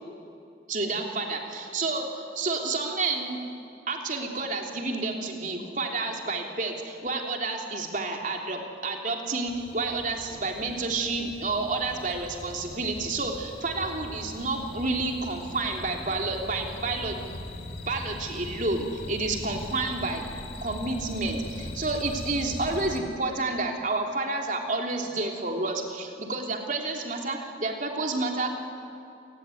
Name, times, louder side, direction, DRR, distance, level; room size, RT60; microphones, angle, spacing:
voice 1, 0.7-3.4 3.9-17.3 17.9-20.2 20.6-28.5, right 3 dB, 45° right, 2 dB, 3.3 m, -30 dB
sound 1, 9.5-23.0, left 1 dB, 60° left, 3.0 m, -40 dB
27.5 x 19.0 x 9.4 m, 2.7 s
head